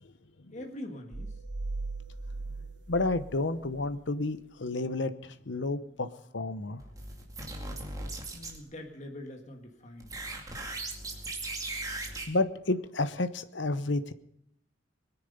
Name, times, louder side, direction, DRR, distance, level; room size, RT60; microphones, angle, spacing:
voice 1, 0.5-1.4 8.3-10.3, left 1 dB, 35° left, 3 dB, 1.7 m, -44 dB
sound 1, 1.1-4.0, right 3 dB, 65° right, 1.0 m, -39 dB
voice 2, 2.9-5.1 5.5-6.1 6.3-6.8 12.3-14.1, left 2 dB, 65° left, 11 dB, 0.9 m, -30 dB
sound 2, 6.8-8.6 10.0-12.3, right 2 dB, 20° right, 2.3 m, -38 dB
22.0 x 10.5 x 5.4 m, 0.72 s
head